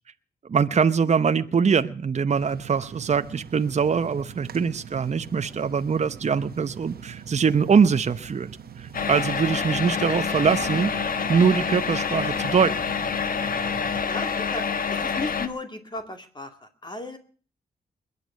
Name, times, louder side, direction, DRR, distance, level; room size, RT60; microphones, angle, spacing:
voice 1, 0.5-8.5 8.8-10.9 11.3-12.8, right 6 dB, 45° right, 11 dB, 0.9 m, -23 dB
sound 1, 2.3-14.0, right 7 dB, 70° right, 1.3 m, -42 dB
sound 2, 8.9-15.5, left 6 dB, 60° left, 1.3 m, -27 dB
voice 2, 14.0-17.2, left 2 dB, 25° left, 5 dB, 2.3 m, -36 dB
21.5 x 8.5 x 7.6 m, 0.43 s
cardioid pair, 65°, 16 cm